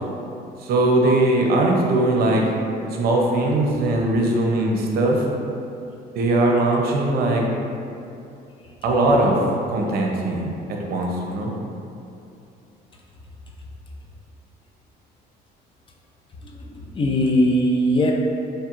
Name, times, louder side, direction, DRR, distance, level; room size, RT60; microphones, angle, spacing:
voice 1, 0.6-2.4 2.9-5.2 6.1-7.4 8.8-9.4 9.7-10.5 10.8-11.5, right 2 dB, 65° right, 0 dB, 0.6 m, -20 dB
voice 2, 16.7-18.1, equal, 30° left, -1 dB, 0.5 m, -19 dB
4.3 x 3.2 x 2.4 m, 2.6 s
cardioid pair, 110°, 17 cm